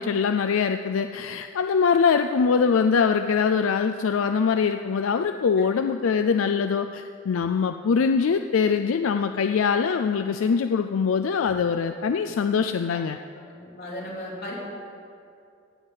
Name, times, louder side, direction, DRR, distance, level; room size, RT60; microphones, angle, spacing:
voice 1, 0.0-13.2, left 6 dB, 85° left, 7 dB, 0.4 m, -23 dB
voice 2, 13.5-14.5, left 1 dB, 50° left, -5 dB, 3.2 m, -36 dB
16.0 x 5.6 x 8.2 m, 2.4 s
head